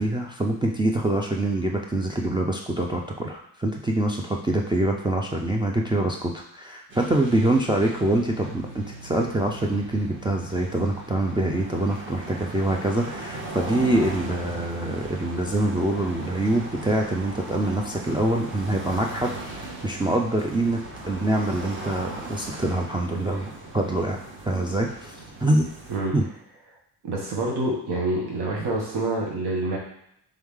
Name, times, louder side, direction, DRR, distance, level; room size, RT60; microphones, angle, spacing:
voice 1, 0.0-24.2 24.4-25.7 26.1-26.2, right 1 dB, 10° right, -1 dB, 0.3 m, -25 dB
sound 1, 6.9-26.0, right 2 dB, 30° right, 0.9 m, -38 dB
voice 2, 27.0-29.8, right 2 dB, 65° right, -2 dB, 1.4 m, -27 dB
3.6 x 3.2 x 3.5 m, 0.74 s
cardioid pair, 95°, 42 cm